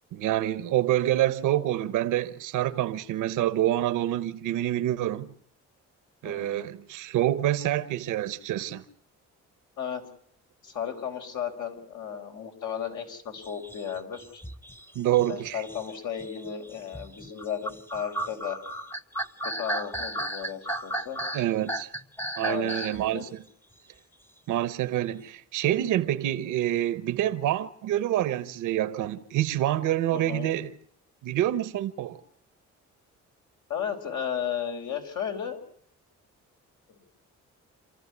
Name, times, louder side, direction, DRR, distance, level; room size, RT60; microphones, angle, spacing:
voice 1, 0.1-5.3 6.2-8.8 14.9-15.6 21.3-21.9 22.4-23.4 24.5-30.7 31.2-32.2, right 13 dB, 85° right, 1.0 m, -27 dB
voice 2, 6.2-6.7 9.8-10.0 10.6-14.4 15.3-18.6 19.4-21.2 22.4-23.3 30.1-30.5 33.7-35.6 36.9-37.1, left 8 dB, 75° left, 4.5 m, -34 dB
sound 1, 13.4-23.1, right 1 dB, 5° left, 0.9 m, -35 dB
28.0 x 14.5 x 9.7 m
cardioid pair, 90°, 30 cm